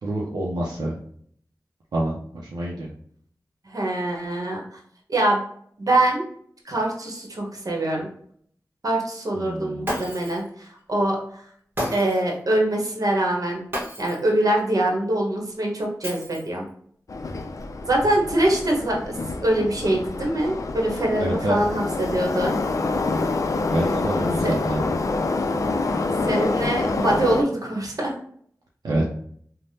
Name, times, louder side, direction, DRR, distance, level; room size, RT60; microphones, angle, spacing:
voice 1, 0.0-1.0 1.9-2.9 9.3-10.0 21.2-21.6 23.7-25.0 28.8-29.1, right 1 dB, 85° right, -4 dB, 0.5 m, -27 dB
voice 2, 3.7-4.6 5.1-5.4 5.8-6.3 6.6-8.1 8.8-11.4 11.9-13.6 14.0-16.7 17.9-19.1 19.4-22.6 24.4-24.5 26.2-28.1, right 1 dB, 60° right, 0 dB, 0.9 m, -24 dB
Shatter, 9.8-10.5 11.8-12.3 13.7-14.3 16.0-16.7, equal, 35° right, 1.1 m, -31 dB
Subway metro underground, 17.1-27.4, left 3 dB, 55° left, 0.3 m, -26 dB
3.3 x 2.1 x 2.7 m, 0.62 s
cardioid pair, 45°, 7 cm